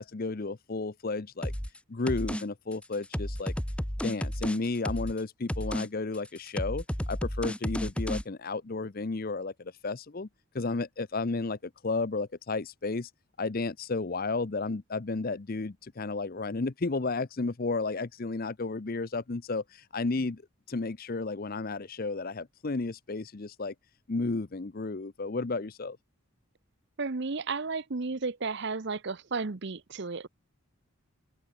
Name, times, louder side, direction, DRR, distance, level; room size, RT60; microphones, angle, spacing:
voice 1, 0.0-1.5 1.9-3.5 4.0-10.3 10.5-11.6 11.8-13.1 13.4-19.6 19.9-20.4 20.7-23.7 24.1-26.0, left 3 dB, 40° left, 0.6 m, -32 dB
sound 1, 1.4-1.8 2.1-2.4 2.7-5.2 5.5-5.9 6.1-8.2, equal, 5° left, 1.3 m, -32 dB
voice 2, 27.0-30.3, right 4 dB, 50° right, 0.8 m, -33 dB
head